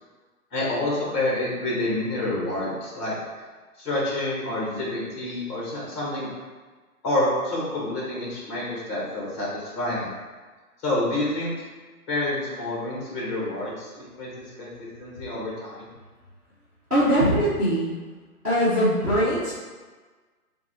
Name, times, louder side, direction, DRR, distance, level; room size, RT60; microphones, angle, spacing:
voice 1, 0.5-3.1 3.8-6.3 7.0-10.1 10.8-11.5 12.1-14.3 14.6-15.9, left 1 dB, 15° left, -5 dB, 1.0 m, -28 dB
voice 2, 16.9-17.9 18.4-19.5, equal, 5° right, -21 dB, 0.6 m, -21 dB
6.8 x 2.3 x 3.1 m, 1.4 s
hypercardioid pair, 160°, 45 cm